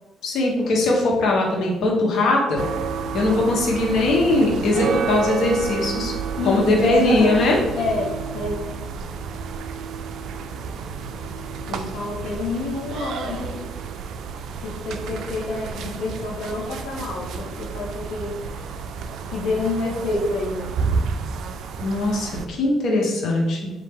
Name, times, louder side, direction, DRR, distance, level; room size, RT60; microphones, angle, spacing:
voice 1, 0.2-2.6 3.1-6.1 6.4-7.6 21.8-23.7, left 2 dB, 70° left, -1 dB, 1.1 m, -20 dB
sound 1, 2.6-22.5, right 5 dB, 80° right, 0.3 m, -31 dB
voice 2, 6.4-8.6 11.7-13.7 14.6-18.7 19.3-20.7, left 3 dB, 85° left, -5 dB, 0.7 m, -28 dB
4.4 x 2.7 x 3.5 m, 1.1 s
cardioid pair, 90°, 0 cm